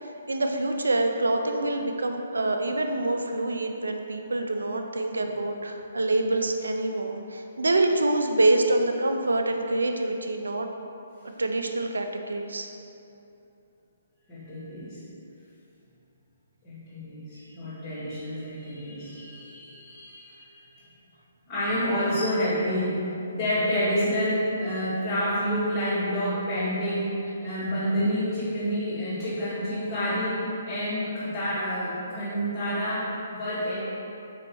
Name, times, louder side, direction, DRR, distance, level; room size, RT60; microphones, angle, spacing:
voice 1, 0.0-10.7 11.4-12.7, right 2 dB, 85° right, 4 dB, 0.3 m, -26 dB
voice 2, 14.3-15.0 16.6-20.8 21.5-22.9 23.3-30.4 30.7-33.7, equal, 20° left, -16 dB, 1.4 m, -28 dB
4.1 x 3.1 x 3.0 m, 2.8 s
hypercardioid pair, 140°, 0 cm